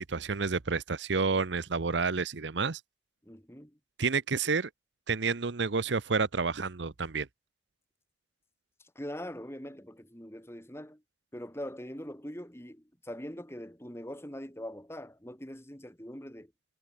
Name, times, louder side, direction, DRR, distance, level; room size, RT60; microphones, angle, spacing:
voice 1, 0.0-2.8 4.0-4.7 5.1-7.3, right 4 dB, 75° right, 0.9 m, -29 dB
voice 2, 3.2-3.8 9.0-11.0 11.3-16.5, equal, 15° left, 3.8 m, -42 dB
head